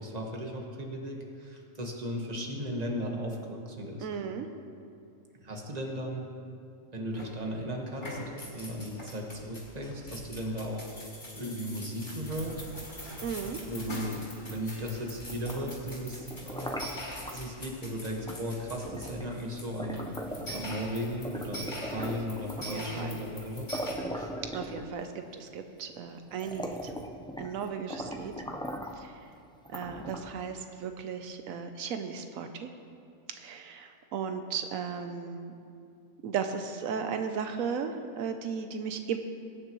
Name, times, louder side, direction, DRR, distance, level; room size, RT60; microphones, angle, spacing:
voice 1, 0.0-4.1 5.4-6.3 6.9-8.2 8.5-10.9 11.4-12.6 13.5-16.8 17.3-20.1 20.5-23.7 24.1-24.3, equal, 30° right, 0 dB, 1.5 m, -36 dB
voice 2, 4.0-4.5 13.2-13.6 22.7-23.2 24.5-26.9 27.4-28.3 28.9-29.1 29.7-32.7 33.4-35.5 36.2-39.2, right 6 dB, 90° right, 7 dB, 1.1 m, -35 dB
sound 1, 7.1-7.6 7.9-23.9, left 1 dB, 45° left, 3.9 m, -43 dB
sound 2, 15.3-17.4 18.3-18.5 18.8-20.9 21.2-22.9 23.4-23.5 23.7-25.2 25.9-26.0 26.3-27.6 27.9-29.0 29.6-30.4, equal, 5° left, 0.3 m, -39 dB
20.5 x 9.8 x 3.1 m, 2.4 s
omnidirectional pair, 1.4 m